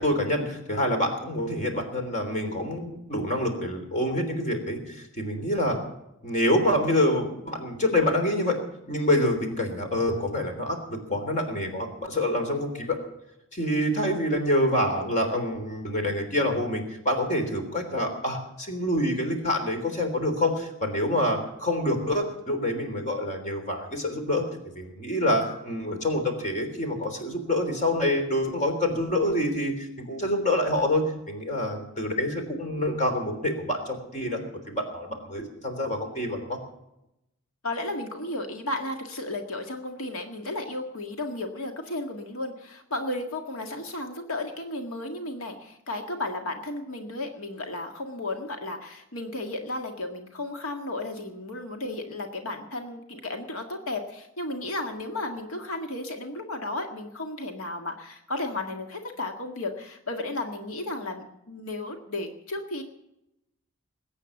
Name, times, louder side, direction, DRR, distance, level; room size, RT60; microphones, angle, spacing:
voice 1, 0.0-5.8 6.2-8.6 8.9-13.0 13.5-34.4 34.7-36.6, left 1 dB, 35° left, 4 dB, 3.4 m, -27 dB
voice 2, 37.6-62.8, left 2 dB, 90° left, 4 dB, 1.8 m, -34 dB
20.5 x 8.9 x 7.1 m, 0.86 s
head